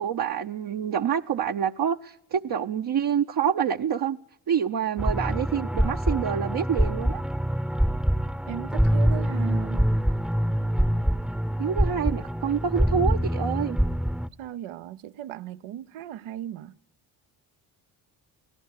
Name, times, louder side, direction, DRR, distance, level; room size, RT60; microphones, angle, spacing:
voice 1, 0.0-4.2 4.5-7.2 11.6-13.8, right 8 dB, 50° right, 0.8 m, -27 dB
sound 1, 5.0-14.3, equal, ahead, 0.8 m, -25 dB
voice 2, 8.5-9.9 14.4-16.7, right 11 dB, 85° right, 0.9 m, -37 dB
25.0 x 17.5 x 6.5 m
supercardioid pair, 60°, 47 cm